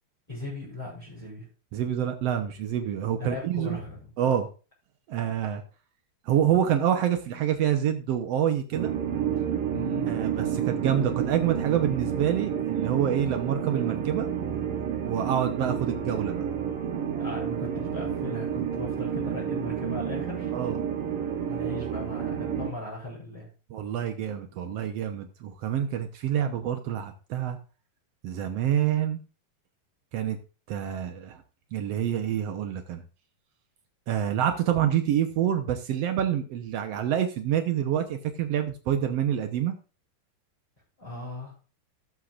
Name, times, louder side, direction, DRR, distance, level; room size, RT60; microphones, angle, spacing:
voice 1, 0.3-1.5 3.2-4.1 9.7-10.1 17.2-20.5 21.5-23.5 41.0-41.5, left 2 dB, 10° left, -7 dB, 5.6 m, -38 dB
voice 2, 1.7-3.8 4.2-4.5 5.1-5.6 6.2-8.9 10.0-14.3 15.1-16.4 20.5-20.8 23.7-27.6 28.2-29.2 30.1-30.4 30.7-31.4 31.7-33.0 34.1-39.7, right 10 dB, 85° right, 7 dB, 1.4 m, -27 dB
sound 1, 8.7-22.7, right 8 dB, 65° right, 3.0 m, -30 dB
17.0 x 7.9 x 2.5 m, 0.35 s
omnidirectional pair, 4.3 m